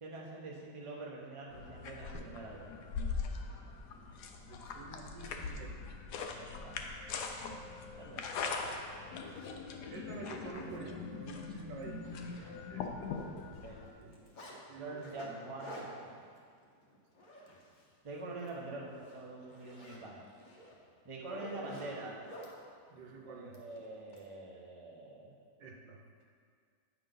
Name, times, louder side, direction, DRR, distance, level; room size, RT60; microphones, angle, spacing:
voice 1, 0.0-2.8 6.4-6.8 8.0-8.4 13.6-13.8 14.7-16.2 18.0-20.3 21.0-22.2 23.3-25.3, right 2 dB, 25° right, -3 dB, 0.7 m, -45 dB
sound 1, 1.5-13.9, left 4 dB, 70° left, 1.2 m, -41 dB
voice 2, 4.5-5.7 9.9-12.0 12.7-12.9 14.0-14.1 14.7-15.5 21.4-22.1 22.9-23.6 25.6-26.0, right 3 dB, 80° right, 0 dB, 1.5 m, -49 dB
Zipper (clothing), 8.2-9.5 10.1-10.3 10.6-10.8 11.1-11.2 11.6-12.9 13.2-14.6 15.0-17.9 18.3-18.5 18.9-22.5 23.5-24.2, equal, 35° left, 0.8 m, -52 dB
9.2 x 5.5 x 3.8 m, 2.1 s
omnidirectional pair, 1.9 m